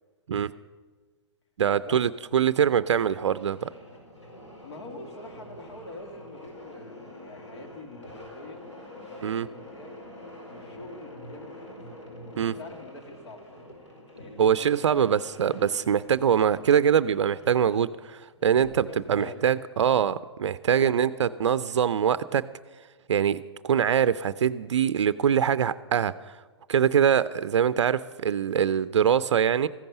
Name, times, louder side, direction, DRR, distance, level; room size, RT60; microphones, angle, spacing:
voice 1, 1.6-3.7 9.2-9.5 12.4-12.6 14.4-22.4 23.1-26.4 26.7-29.7, right 8 dB, 75° right, 15 dB, 0.4 m, -23 dB
sound 1, 2.7-19.1, left 1 dB, 90° left, 4.5 m, -47 dB
voice 2, 4.6-10.0 10.5-11.8 12.4-13.7 14.2-15.1 18.7-19.5 20.8-21.4, left 2 dB, 65° left, 4 dB, 2.5 m, -44 dB
14.5 x 10.5 x 6.7 m, 1.4 s
hypercardioid pair, 115°, 15 cm